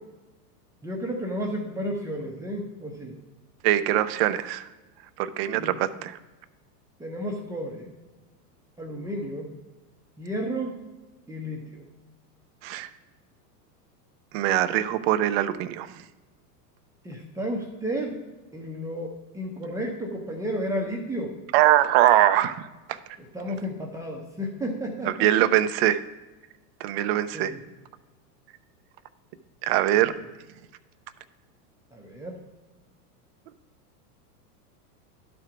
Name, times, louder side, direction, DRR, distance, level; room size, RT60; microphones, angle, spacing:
voice 1, 0.8-3.2 5.5-5.8 7.0-7.9 8.8-9.5 10.2-10.8 11.3-11.8 17.0-18.2 18.5-21.4 23.2-25.3 27.3-27.6 30.0-30.2 31.9-32.4, equal, 5° right, -2 dB, 0.7 m, -32 dB
voice 2, 3.6-4.7 5.2-6.2 12.6-12.9 14.3-16.0 21.5-23.0 25.1-26.0 26.8-27.5 29.6-30.1, right 13 dB, 45° right, 12 dB, 0.5 m, -22 dB
12.0 x 4.5 x 4.9 m, 1.1 s
supercardioid pair, 135°, 48 cm